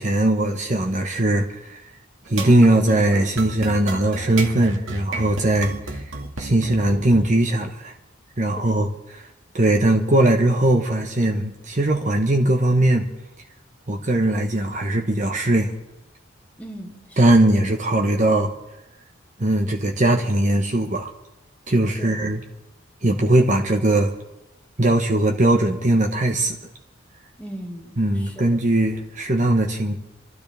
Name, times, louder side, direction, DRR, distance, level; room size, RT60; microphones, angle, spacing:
voice 1, 0.0-1.8 2.3-6.0 6.4-7.9 8.4-8.9 9.5-13.1 13.9-15.7 17.2-18.5 19.4-21.1 21.7-22.4 23.0-24.1 24.8-26.6 28.0-29.9, right 1 dB, 40° right, 2 dB, 1.1 m, -20 dB
sound 1, 2.2-7.3, right 3 dB, 85° right, 2.1 m, -32 dB
voice 2, 16.6-17.4 22.0-22.2 27.4-28.5, equal, 10° left, -1 dB, 2.4 m, -39 dB
29.5 x 12.5 x 3.5 m, 0.98 s
head